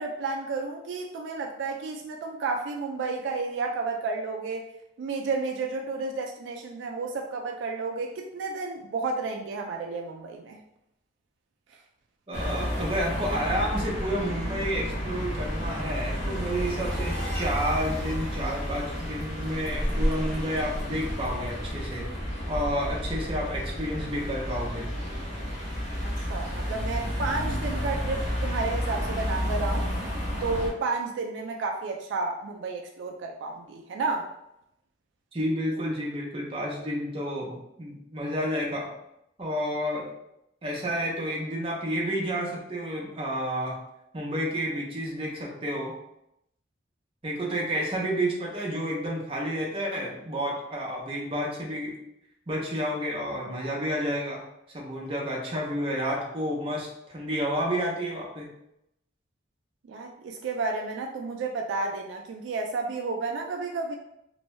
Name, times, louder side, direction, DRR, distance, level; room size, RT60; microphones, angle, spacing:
voice 1, 0.0-4.7 5.0-10.6 26.0-29.9 30.4-34.3 59.9-64.0, right 3 dB, 70° right, 1 dB, 0.3 m, -31 dB
sound 1, 12.3-30.7, equal, 35° left, 0.8 m, -31 dB
voice 2, 12.3-22.1 22.5-24.9 35.3-38.9 39.4-40.1 40.6-43.8 44.1-45.9 47.2-51.9 52.5-54.4 54.7-58.5, equal, 30° right, -2 dB, 0.6 m, -30 dB
2.6 x 2.2 x 3.1 m, 0.82 s
head